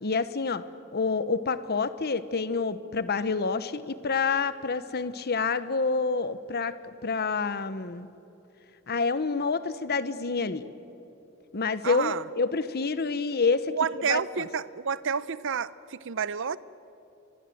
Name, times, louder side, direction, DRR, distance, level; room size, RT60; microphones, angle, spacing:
voice 1, 0.0-0.6 0.9-6.7 7.0-8.1 8.9-10.6 11.5-13.7 14.1-14.4, left 4 dB, 45° left, 13 dB, 1.0 m, -28 dB
voice 2, 11.8-12.2 13.7-16.6, right 6 dB, 60° right, 17 dB, 0.7 m, -30 dB
29.5 x 22.5 x 7.8 m, 2.9 s
head